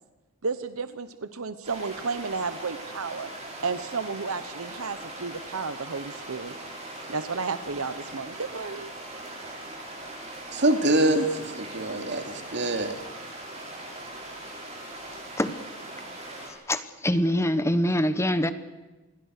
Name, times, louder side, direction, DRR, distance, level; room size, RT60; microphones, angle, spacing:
voice 1, 0.4-3.3 3.6-6.5 7.1-8.9, right 4 dB, 70° right, 1.0 m, -32 dB
sound 1, 1.6-16.5, right 1 dB, 30° right, 7.5 m, -40 dB
voice 2, 10.5-12.9, right 1 dB, 55° right, 2.8 m, -25 dB
voice 3, 16.7-18.5, equal, 15° left, 1.1 m, -24 dB
27.5 x 22.0 x 6.6 m
head